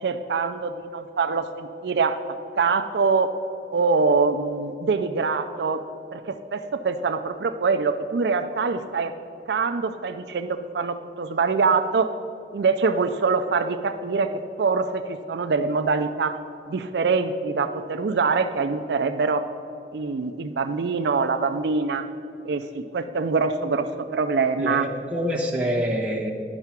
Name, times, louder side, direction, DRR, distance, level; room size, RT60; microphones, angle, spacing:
voice 1, 0.0-2.2 2.6-3.3 3.7-5.8 6.1-9.1 9.5-12.1 12.5-14.3 14.6-16.4 16.7-19.4 19.9-22.0 22.4-24.8, right 4 dB, 65° right, 8 dB, 0.4 m, -24 dB
voice 2, 24.6-26.3, equal, 5° right, -3 dB, 1.0 m, -26 dB
11.0 x 5.6 x 5.9 m, 2.6 s
head